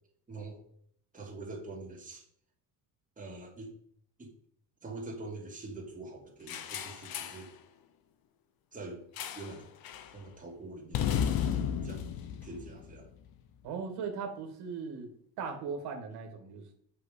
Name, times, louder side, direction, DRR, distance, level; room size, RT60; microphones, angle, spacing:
voice 1, 0.3-0.6 1.1-2.2 3.2-3.7 4.2-4.3 4.8-7.5 8.7-9.0 9.3-9.7 10.1-11.2 11.8-12.0 12.4-13.1, right 2 dB, 20° right, -1 dB, 2.4 m, -44 dB
sound 1, 6.5-7.5 9.2-9.6 9.8-10.1 10.9-13.3, left 9 dB, 65° left, 0.9 m, -34 dB
voice 2, 13.6-15.1 15.4-16.7, right 5 dB, 75° right, 3 dB, 1.9 m, -38 dB
8.0 x 5.7 x 5.2 m, 0.65 s
cardioid pair, 130°, 39 cm